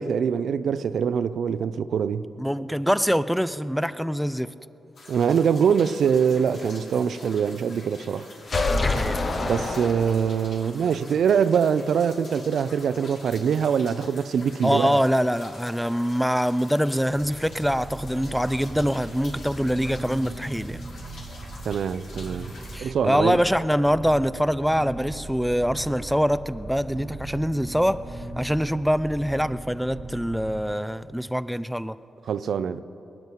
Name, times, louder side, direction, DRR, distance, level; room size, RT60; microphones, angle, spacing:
voice 1, 0.0-2.3 5.1-8.3 9.4-15.0 21.6-22.5 22.8-23.4 32.3-32.8, right 7 dB, 75° right, 0.5 m, -23 dB
voice 2, 2.4-4.5 8.7-9.2 14.6-20.8 22.7-28.0 28.4-32.0, equal, ahead, 0.5 m, -24 dB
sound 1, 4.9-22.8, left 2 dB, 75° left, 3.0 m, -46 dB
sound 2, 8.4-10.5, left 3 dB, 50° left, 1.4 m, -26 dB
sound 3, 17.1-30.7, right 2 dB, 40° right, 1.2 m, -39 dB
20.0 x 8.9 x 8.0 m
supercardioid pair, 45°, 0 cm